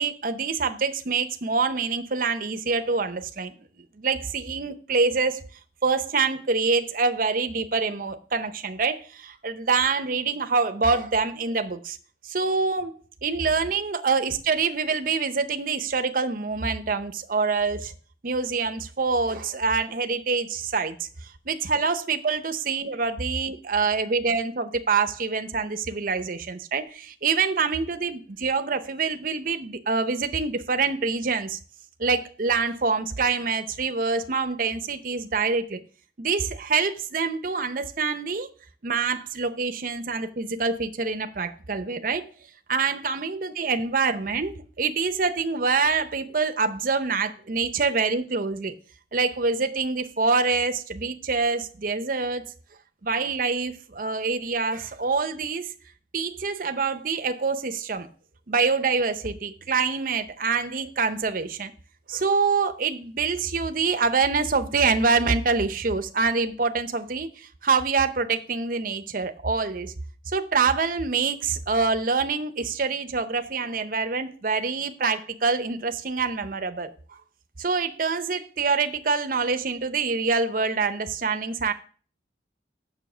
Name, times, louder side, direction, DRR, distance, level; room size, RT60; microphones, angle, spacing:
voice 1, 0.0-3.5 4.0-5.4 5.8-12.0 12.2-17.9 18.2-21.1 21.5-31.6 32.0-35.8 36.2-38.5 38.8-42.3 42.7-48.7 49.1-52.5 53.0-55.7 56.1-58.1 58.5-61.7 62.1-69.9 70.3-76.9 77.6-81.7, right 4 dB, 50° right, 0.7 m, -25 dB
7.1 x 6.2 x 6.2 m
head